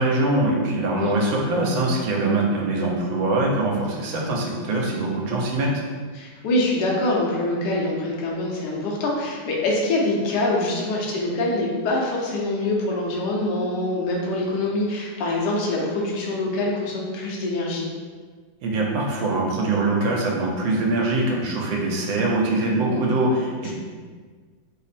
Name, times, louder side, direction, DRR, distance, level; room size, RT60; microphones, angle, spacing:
voice 1, 0.0-5.7 18.6-23.7, right 2 dB, 80° right, -1 dB, 1.3 m, -23 dB
voice 2, 6.1-17.9 23.6-23.7, left 2 dB, 70° left, -2 dB, 1.2 m, -24 dB
3.5 x 2.0 x 4.1 m, 1.5 s
omnidirectional pair, 2.2 m